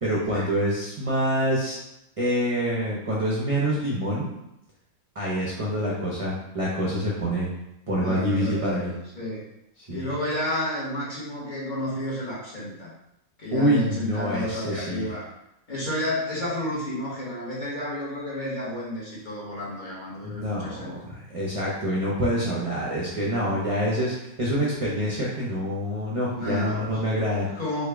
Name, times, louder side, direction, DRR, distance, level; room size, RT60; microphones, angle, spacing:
voice 1, 0.0-1.8 2.2-4.3 5.2-7.5 7.9-8.9 9.9-10.1 13.5-15.1 20.2-27.5, equal, 45° right, -5 dB, 0.4 m, -26 dB
voice 2, 8.0-9.4 9.9-12.9 13.4-15.2 15.7-21.0 26.3-27.0 27.4-27.9, left 1 dB, 35° left, -8 dB, 1.1 m, -31 dB
3.4 x 2.3 x 3.4 m, 0.86 s
omnidirectional pair, 1.5 m